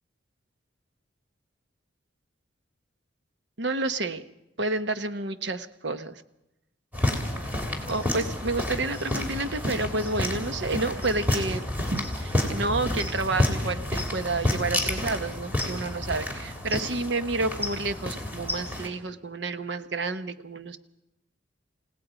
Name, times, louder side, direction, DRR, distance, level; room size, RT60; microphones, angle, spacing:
voice 1, 3.6-4.2 4.6-6.1 7.9-20.8, right 2 dB, 65° right, 10 dB, 1.1 m, -30 dB
sound 1, 6.9-18.9, left 1 dB, 10° right, 3.0 m, -30 dB
29.5 x 17.5 x 5.1 m, 0.88 s
head